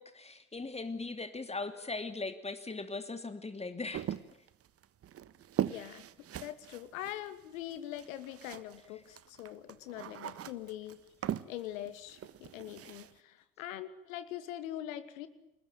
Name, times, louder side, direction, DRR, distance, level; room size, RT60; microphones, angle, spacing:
voice 1, 0.0-4.1, left 3 dB, 15° left, 9 dB, 2.9 m, -39 dB
sound 1, 3.9-8.9 9.1-13.1, right 10 dB, 35° right, 1.3 m, -40 dB
voice 2, 5.7-6.0 6.4-11.0 11.5-15.3, left 12 dB, 65° left, 12 dB, 2.6 m, -43 dB
29.5 x 20.5 x 9.2 m, 0.86 s
figure-of-eight pair, 65°, 43 cm